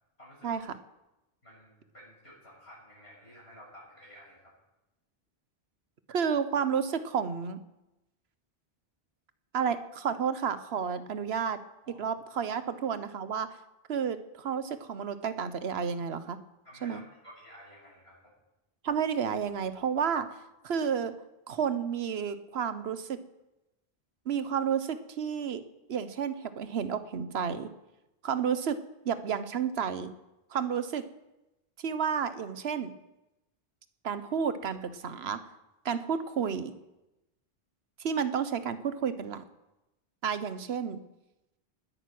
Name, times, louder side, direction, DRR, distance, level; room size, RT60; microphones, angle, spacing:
voice 1, 0.2-0.6 1.4-4.5 11.8-12.0 16.6-18.4, equal, 90° left, -4 dB, 7.3 m, -52 dB
voice 2, 6.1-7.6 9.5-11.6 11.9-13.5 13.9-16.4 16.8-17.0 18.8-20.3 20.6-21.1 21.5-23.2 24.3-25.6 25.9-27.7 28.2-28.8 29.0-30.1 30.5-31.0 31.8-32.9 34.0-35.4 35.8-36.7 38.0-39.4 40.2-41.0, right 7 dB, 85° right, 12 dB, 1.1 m, -31 dB
19.0 x 9.3 x 6.0 m, 0.97 s
omnidirectional pair, 1.0 m